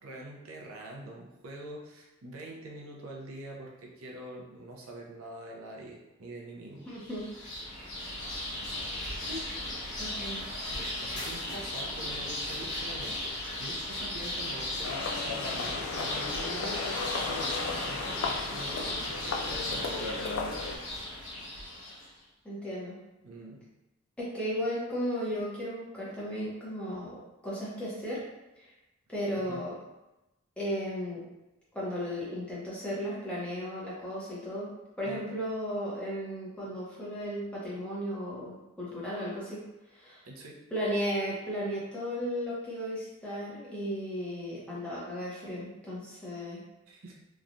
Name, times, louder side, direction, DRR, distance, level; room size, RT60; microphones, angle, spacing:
voice 1, 0.0-6.9 10.7-20.3 23.2-23.6 29.5-29.6 35.0-35.2 40.2-40.6 46.9-47.2, right 1 dB, 80° right, -1 dB, 0.6 m, -45 dB
sound 1, 6.9-22.1, left 1 dB, 85° left, 1.1 m, -36 dB
voice 2, 6.9-7.2 9.2-9.4 10.0-10.4 22.4-23.0 24.2-28.2 28.6-28.7 29.1-29.7 30.6-31.2 31.7-34.7 35.0-39.6 39.9-40.2 40.7-46.6, equal, 5° left, -8 dB, 0.7 m, -35 dB
sound 2, 14.8-20.8, left 4 dB, 70° left, 0.3 m, -35 dB
3.0 x 2.2 x 2.5 m, 0.98 s
head